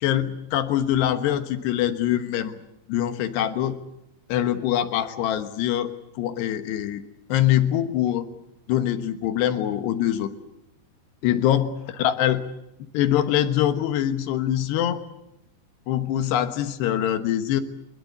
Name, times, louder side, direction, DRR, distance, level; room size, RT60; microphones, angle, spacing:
voice 1, 0.0-2.6 2.9-3.8 4.3-5.9 6.2-7.0 7.3-8.3 8.7-10.3 11.2-11.7 12.0-12.4 12.9-15.1 15.9-17.6, left 11 dB, 70° left, 10 dB, 3.3 m, -23 dB
24.5 x 21.0 x 8.4 m, 0.84 s
omnidirectional pair, 5.2 m